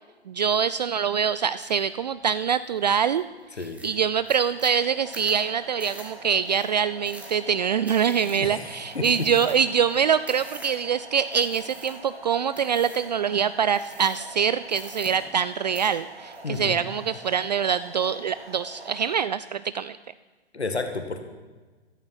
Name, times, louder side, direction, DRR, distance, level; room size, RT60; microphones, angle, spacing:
voice 1, 0.3-3.2 3.6-20.0, right 7 dB, 40° right, 15 dB, 0.4 m, -24 dB
sound 1, 1.6-1.9 2.3-2.8 3.2-3.3 3.5-10.9 11.3-12.2 12.5-13.1 13.7-14.4 14.7-15.5 15.7-16.9 17.2-17.8, right 1 dB, 5° right, 2.3 m, -46 dB
sound 2, 3.9-19.2, right 2 dB, 65° right, 4.2 m, -45 dB
voice 2, 8.2-9.1 16.4-16.8 20.5-21.2, left 4 dB, 75° left, 6 dB, 1.9 m, -31 dB
14.0 x 13.5 x 6.0 m, 1.3 s
figure-of-eight pair, 120°, 33 cm